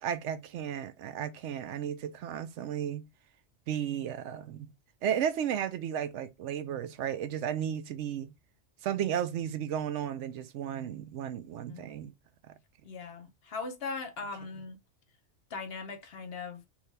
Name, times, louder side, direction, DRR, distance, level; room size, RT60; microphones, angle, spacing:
voice 1, 0.0-3.1 3.7-4.7 5.0-8.3 8.8-12.1, right 9 dB, 80° right, 0.9 m, -34 dB
voice 2, 12.8-14.8 15.5-16.6, left 4 dB, 60° left, 1.0 m, -39 dB
3.6 x 3.0 x 3.3 m
omnidirectional pair, 1.2 m